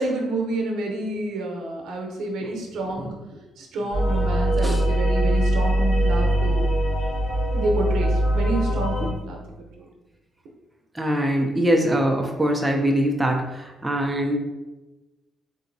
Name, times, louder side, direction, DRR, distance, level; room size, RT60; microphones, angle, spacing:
voice 1, 0.0-3.1 3.6-6.7 7.5-9.4 9.8-9.9, right 2 dB, 70° right, 1 dB, 0.7 m, -28 dB
sound 1, 3.9-9.1, right 1 dB, 75° left, 1.2 m, -22 dB
voice 2, 10.9-14.4, equal, 10° right, 1 dB, 0.3 m, -23 dB
3.8 x 2.7 x 2.6 m, 1.1 s
cardioid pair, 145°, 0 cm